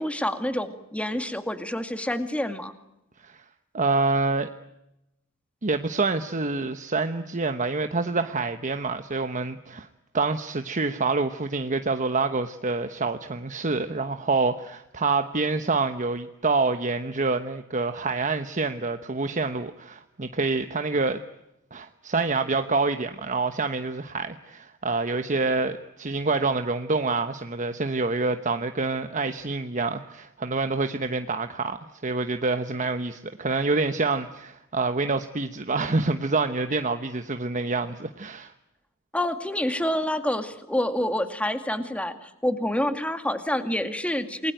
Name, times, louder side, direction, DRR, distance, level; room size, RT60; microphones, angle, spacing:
voice 1, 0.0-2.7 39.1-44.5, left 1 dB, 5° left, 8 dB, 2.3 m, -27 dB
voice 2, 3.7-4.5 5.6-9.9 10.1-21.2 21.7-38.5, right 3 dB, 35° right, 8 dB, 1.1 m, -27 dB
28.5 x 21.5 x 9.1 m, 0.90 s
head